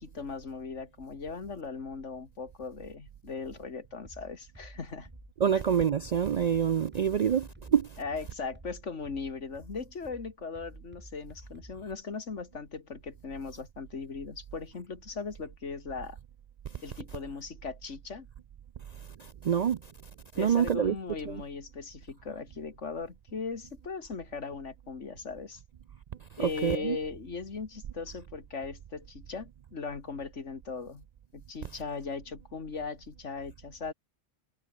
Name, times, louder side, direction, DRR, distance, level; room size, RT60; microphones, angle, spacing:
voice 1, 0.0-5.1 8.0-16.2 16.8-18.3 20.4-25.6 26.4-31.0 31.3-33.9, left 4 dB, 80° left, 2.4 m, -38 dB
sound 1, 4.0-11.9, right 1 dB, 10° right, 2.0 m, -51 dB
voice 2, 5.4-7.9 19.2-19.8 20.4-21.0 21.3-21.4 26.4-27.0, right 8 dB, 60° right, 0.4 m, -26 dB
omnidirectional pair, 1.2 m